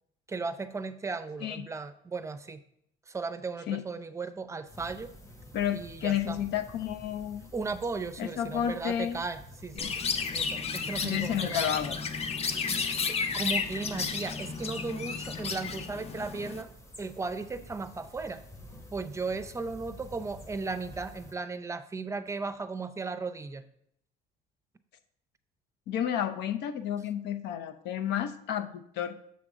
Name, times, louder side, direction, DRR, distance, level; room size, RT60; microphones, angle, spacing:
voice 1, 0.3-2.6 3.1-5.1 5.7-6.4 7.5-9.9 10.3-11.8 12.7-13.0 13.3-16.7 17.0-18.4 18.9-23.6, right 4 dB, 15° right, 12 dB, 0.5 m, -36 dB
sound 1, 4.7-21.3, equal, 20° left, 1.4 m, -49 dB
voice 2, 5.5-7.5 8.2-9.2 9.8-9.9 11.0-12.0 25.9-29.2, left 10 dB, 85° left, 9 dB, 0.7 m, -31 dB
Chirp tweet, 9.8-16.6, left 5 dB, 35° left, 0.7 m, -32 dB
7.2 x 3.7 x 6.1 m, 0.71 s
cardioid pair, 110°, 17 cm